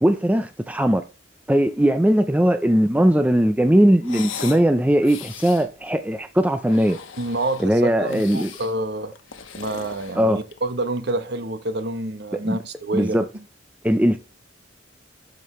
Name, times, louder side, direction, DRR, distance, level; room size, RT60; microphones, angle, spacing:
voice 1, 0.0-1.0 1.5-7.0 7.6-8.5 10.1-10.4 12.4-12.6 12.9-13.3 13.8-14.2, equal, 5° right, 0.5 m, -19 dB
sound 1, 4.0-4.7 5.0-5.7 6.5-7.7 8.1-8.7 9.2-10.7, left 7 dB, 90° left, 1.1 m, -38 dB
voice 2, 7.2-9.1 9.5-13.2, right 2 dB, 55° right, 1.0 m, -28 dB
12.5 x 5.2 x 3.1 m
head